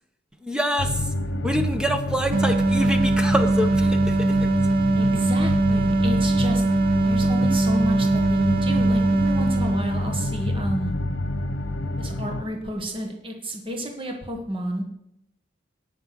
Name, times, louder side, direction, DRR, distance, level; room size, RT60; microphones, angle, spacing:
voice 1, 0.4-1.1 1.4-4.5, equal, 5° right, 6 dB, 1.2 m, -26 dB
sound 1, 0.8-12.4, left 1 dB, 85° left, 1.0 m, -28 dB
sound 2, 2.3-10.4, right 2 dB, 50° right, 0.6 m, -21 dB
voice 2, 4.9-6.6 7.0-10.9 12.0-14.8, equal, 30° right, 2 dB, 1.6 m, -31 dB
18.0 x 6.7 x 6.1 m, 0.80 s
head